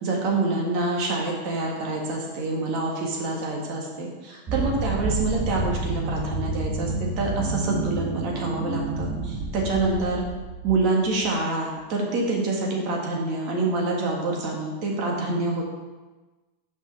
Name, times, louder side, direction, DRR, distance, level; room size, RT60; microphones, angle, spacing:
voice 1, 0.0-10.2 10.6-15.6, right 2 dB, 45° right, -1 dB, 1.6 m, -26 dB
sound 1, 4.5-11.3, right 3 dB, 20° right, 0.8 m, -29 dB
5.8 x 5.5 x 5.3 m, 1.2 s
supercardioid pair, 155°, 0 cm